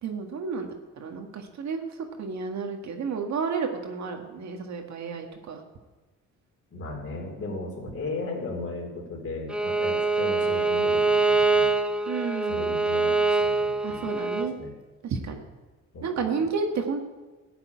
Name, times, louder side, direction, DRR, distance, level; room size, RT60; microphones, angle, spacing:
voice 1, 0.0-1.9 2.2-5.6 12.1-12.7 13.8-14.6 15.0-15.4 16.0-17.0, right 5 dB, 65° right, 3 dB, 1.8 m, -31 dB
voice 2, 6.7-11.7 12.5-14.1 14.6-14.7 15.9-16.3, left 2 dB, 45° left, -1 dB, 4.0 m, -36 dB
Bowed string instrument, 9.5-14.5, right 3 dB, 5° right, 1.1 m, -24 dB
13.0 x 6.8 x 9.4 m, 1.2 s
cardioid pair, 90°, 30 cm